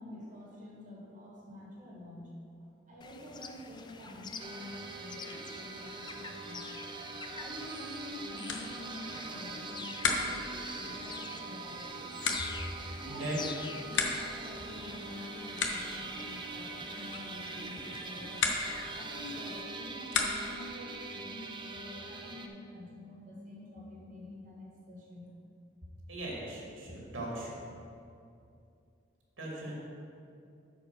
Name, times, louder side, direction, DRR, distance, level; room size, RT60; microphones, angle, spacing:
voice 1, 0.0-2.3 2.9-6.7 7.3-11.9 12.9-18.4 18.9-21.5 21.7-25.3, left 1 dB, 40° right, -5 dB, 2.0 m, -47 dB
sound 1, 3.0-19.6, left 4 dB, 25° left, 0.4 m, -47 dB
sound 2, 4.4-22.5, right 3 dB, 25° right, 0.5 m, -43 dB
sound 3, 8.4-20.7, left 4 dB, 70° left, 0.9 m, -38 dB
voice 2, 13.1-13.4 26.1-27.6 29.4-29.7, right 1 dB, 90° right, -4 dB, 2.3 m, -38 dB
8.7 x 5.0 x 6.1 m, 2.5 s
head